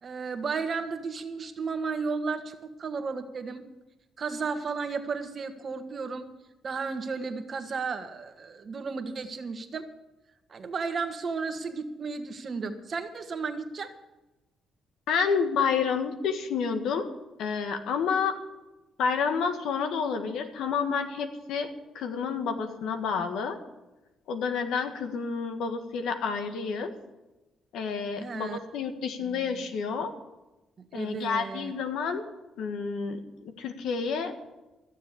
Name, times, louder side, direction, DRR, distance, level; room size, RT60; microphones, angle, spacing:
voice 1, 0.0-3.6 4.2-6.3 6.6-9.9 10.5-13.9 28.2-28.6 29.2-29.6 30.8-31.7, right 4 dB, 45° right, 7 dB, 1.5 m, -34 dB
voice 2, 15.1-17.1 17.4-18.4 19.0-23.6 24.3-26.9 27.7-30.1 30.9-32.2 32.6-34.3, left 6 dB, 80° left, 7 dB, 1.6 m, -29 dB
14.0 x 7.4 x 8.6 m, 1.0 s
cardioid pair, 90°, 0 cm